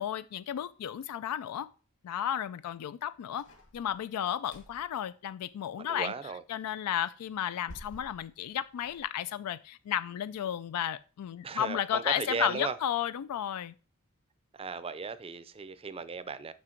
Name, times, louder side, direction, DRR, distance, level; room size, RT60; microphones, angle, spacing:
voice 1, 0.0-1.7 2.0-3.5 3.7-6.1 6.5-13.7, left 10 dB, 85° left, 0.3 m, -33 dB
sound 1, 3.4-4.9 7.4-9.0, left 1 dB, 60° left, 1.7 m, -52 dB
voice 2, 5.8-6.4 11.4-12.8 14.5-16.5, right 4 dB, 25° right, 0.5 m, -36 dB
6.3 x 6.0 x 4.4 m
head